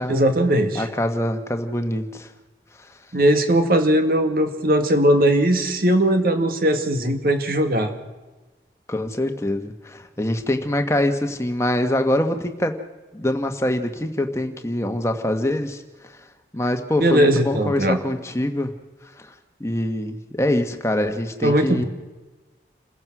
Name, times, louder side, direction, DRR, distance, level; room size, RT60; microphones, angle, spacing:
voice 1, 0.1-0.9 3.1-7.9 17.0-18.0 21.4-21.8, right 1 dB, 55° right, 7 dB, 2.0 m, -19 dB
voice 2, 0.7-2.3 2.8-2.9 8.9-12.8 13.1-16.3 16.5-18.7 19.2-19.3 19.6-21.8, left 1 dB, 15° left, 5 dB, 1.4 m, -24 dB
28.0 x 15.0 x 6.2 m, 1.2 s
head